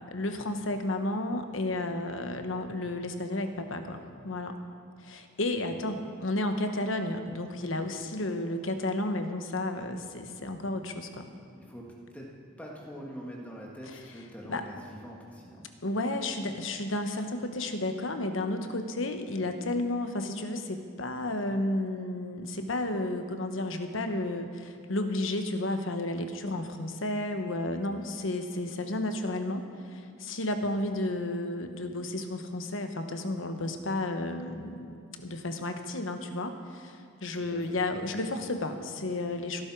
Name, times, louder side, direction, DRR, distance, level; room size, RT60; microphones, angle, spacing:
voice 1, 0.1-4.6 5.0-11.3 13.9-14.0 14.5-14.7 15.8-34.8 35.2-39.6, left 2 dB, 70° left, 6 dB, 1.2 m, -32 dB
voice 2, 11.6-15.7 37.5-37.8, equal, 5° left, -3 dB, 1.5 m, -44 dB
18.0 x 11.5 x 4.7 m, 2.6 s
head